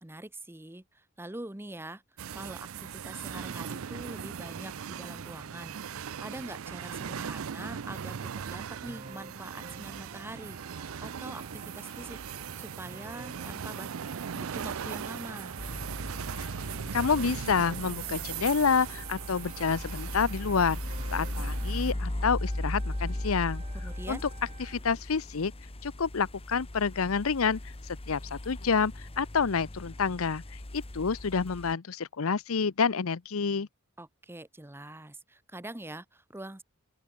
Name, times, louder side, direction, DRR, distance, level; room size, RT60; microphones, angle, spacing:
voice 1, 0.0-2.0 2.3-13.9 14.3-15.6 23.7-24.2 34.0-36.6, right 1 dB, 10° right, 1.1 m, -44 dB
sound 1, 2.2-21.9, right 7 dB, 70° right, 0.5 m, -39 dB
sound 2, 8.8-24.9, right 3 dB, 35° right, 4.0 m, -51 dB
sound 3, 15.6-31.7, left 1 dB, 30° left, 1.1 m, -38 dB
voice 2, 16.9-20.8 21.1-23.6 24.1-24.2 24.7-25.5 25.8-27.6 28.1-30.4 30.7-33.7, left 5 dB, 80° left, 0.7 m, -28 dB
open air
head